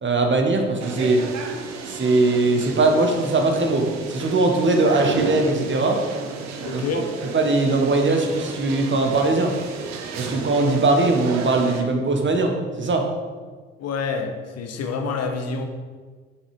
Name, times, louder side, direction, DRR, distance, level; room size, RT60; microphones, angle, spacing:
voice 1, 0.0-1.2 1.9-6.0 6.7-6.8 7.3-9.5 10.2-13.0, right 2 dB, 40° right, 3 dB, 1.5 m, -20 dB
sound 1, 0.8-11.8, right 5 dB, 60° right, 1.0 m, -33 dB
voice 2, 6.6-7.1 13.8-15.7, left 4 dB, 55° left, 4 dB, 1.2 m, -27 dB
7.2 x 6.4 x 5.0 m, 1.5 s
figure-of-eight pair, 45°, 31 cm